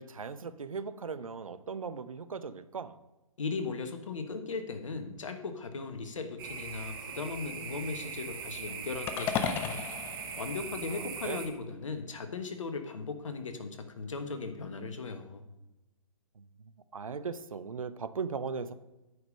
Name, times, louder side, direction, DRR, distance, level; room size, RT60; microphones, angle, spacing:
voice 1, 0.0-2.9 10.9-11.4 16.4-18.7, right 5 dB, 70° right, 13 dB, 0.7 m, -38 dB
voice 2, 3.4-9.8 10.4-15.4, left 4 dB, 60° left, 8 dB, 1.3 m, -38 dB
sound 1, 6.4-11.5, right 6 dB, 40° right, 1.5 m, -41 dB
sound 2, 9.1-11.4, left 7 dB, 10° left, 0.4 m, -35 dB
9.4 x 5.1 x 6.4 m, 1.0 s
figure-of-eight pair, 130°, 18 cm